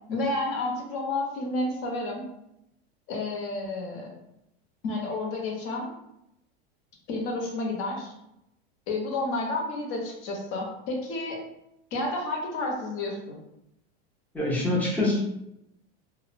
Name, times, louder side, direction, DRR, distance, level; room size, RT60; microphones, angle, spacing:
voice 1, 0.1-2.3 3.1-4.1 4.8-5.9 7.1-8.1 8.9-11.4 11.9-13.4, left 2 dB, 45° left, -1 dB, 0.8 m, -30 dB
voice 2, 14.3-15.2, left 2 dB, 5° left, -4 dB, 0.5 m, -25 dB
2.4 x 2.0 x 2.5 m, 0.82 s
supercardioid pair, 135°, 32 cm